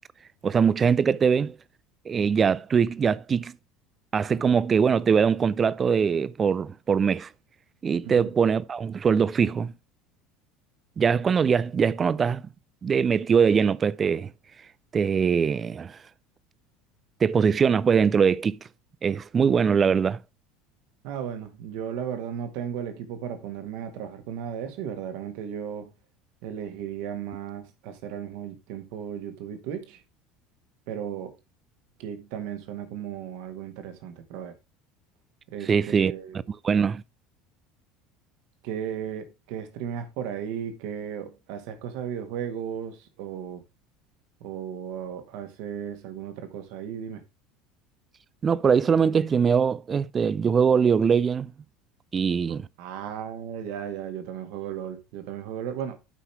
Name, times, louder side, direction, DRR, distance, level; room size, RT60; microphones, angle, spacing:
voice 1, 0.4-1.6 2.1-3.5 4.1-7.3 7.8-9.7 11.0-12.4 12.8-14.3 14.9-16.0 17.2-18.6 19.0-20.2 35.7-36.1 36.6-37.0 48.4-51.5 52.1-52.7, right 6 dB, 30° right, 0.5 m, -22 dB
voice 2, 21.0-25.9 26.4-30.0 30.9-31.4 32.0-34.6 35.5-36.4 38.6-43.6 44.4-47.2 52.8-56.0, right 9 dB, 55° right, 1.8 m, -35 dB
12.0 x 5.7 x 3.4 m
figure-of-eight pair, 70°, 0 cm